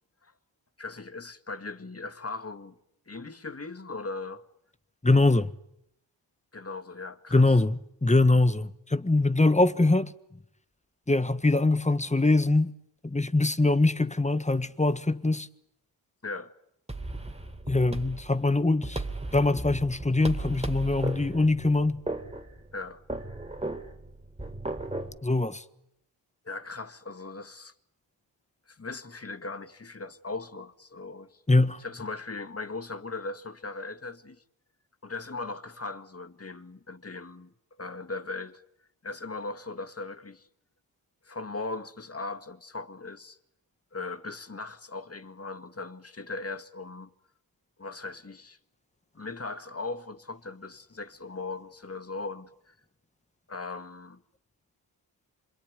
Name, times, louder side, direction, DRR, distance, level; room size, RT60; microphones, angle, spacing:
voice 1, 0.8-2.8 3.1-4.4 6.5-7.6 16.2-16.5 22.7-23.0 26.5-27.7 28.7-31.4 31.8-34.4 35.0-38.6 39.0-40.5 41.2-43.4 43.9-47.1 47.8-48.6 49.1-52.7 53.5-54.2, left 3 dB, 30° left, 2.0 m, -38 dB
voice 2, 5.0-5.5 7.3-10.1 11.1-12.7 13.0-15.5 17.7-19.0 19.3-22.0 25.2-25.6 31.5-31.8, left 2 dB, 15° left, 1.5 m, -23 dB
sound 1, 16.9-25.2, right 2 dB, 15° right, 3.2 m, -36 dB
27.0 x 22.5 x 9.7 m
cardioid pair, 55°, 47 cm